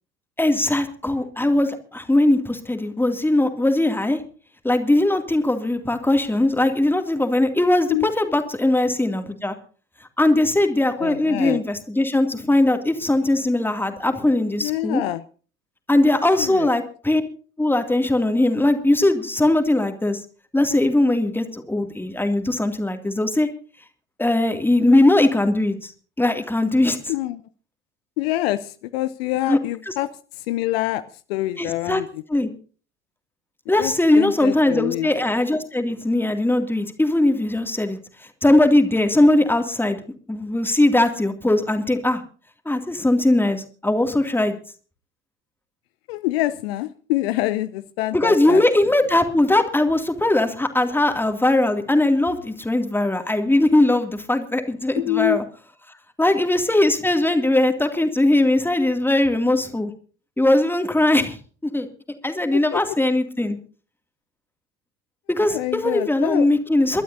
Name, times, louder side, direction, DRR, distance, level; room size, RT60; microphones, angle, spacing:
voice 1, 0.4-4.2 4.6-9.6 10.2-15.0 15.9-17.2 17.6-20.2 20.5-23.5 24.2-25.9 26.2-27.1 29.5-29.6 29.9-30.0 31.6-32.0 32.3-32.5 33.7-38.0 38.4-40.0 40.3-42.2 42.7-44.5 48.1-55.4 56.2-59.9 60.4-61.4 61.7-61.9 62.2-63.6 65.3-67.0, left 1 dB, 5° left, 7 dB, 2.3 m, -20 dB
voice 2, 11.0-11.6 14.6-15.2 16.4-16.7 27.1-27.4 28.2-30.1 30.5-31.0 31.3-32.1 33.8-35.1 46.1-48.6 55.0-55.4 61.2-61.3 62.5-62.8 65.5-66.4, left 16 dB, 60° left, 12 dB, 0.7 m, -25 dB
28.5 x 12.5 x 2.7 m, 0.39 s
figure-of-eight pair, 65°, 35 cm